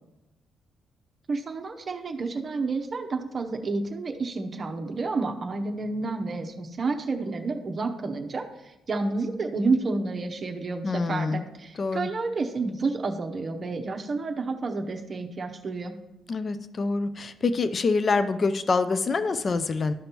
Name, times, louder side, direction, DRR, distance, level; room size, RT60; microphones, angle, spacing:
voice 1, 1.3-15.9, right 3 dB, 40° right, 3 dB, 0.7 m, -30 dB
voice 2, 10.8-11.5 11.8-12.1 16.3-19.9, left 4 dB, 40° left, 12 dB, 0.4 m, -26 dB
13.0 x 5.2 x 3.0 m, 0.97 s
cardioid pair, 90°, 0 cm